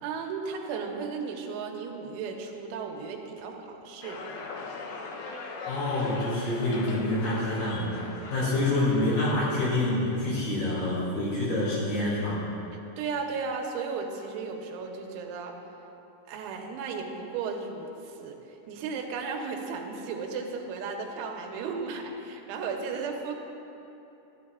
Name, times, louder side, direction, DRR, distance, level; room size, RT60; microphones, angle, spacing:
voice 1, 0.0-4.2 13.0-15.6 16.3-23.3, right 5 dB, 90° right, 2 dB, 3.2 m, -35 dB
sound 1, 4.0-9.3, left 3 dB, 90° left, 2.0 m, -40 dB
voice 2, 5.7-12.4, left 1 dB, 55° left, -8 dB, 3.8 m, -27 dB
11.5 x 11.0 x 2.4 m, 3.0 s
omnidirectional pair, 5.3 m